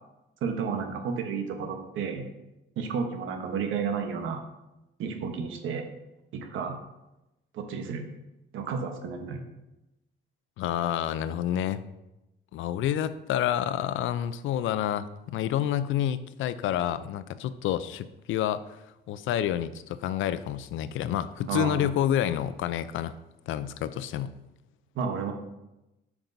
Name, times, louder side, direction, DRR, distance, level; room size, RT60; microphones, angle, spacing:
voice 1, 0.4-2.3 2.8-4.4 5.0-5.8 6.3-6.8 7.5-8.1 8.5-9.5 21.5-21.8 24.9-25.3, right 6 dB, 85° right, 5 dB, 1.0 m, -31 dB
voice 2, 10.6-11.8 12.5-23.2 23.5-24.3, left 11 dB, 80° left, 14 dB, 0.5 m, -29 dB
9.0 x 6.0 x 2.6 m, 0.95 s
cardioid pair, 90°, 20 cm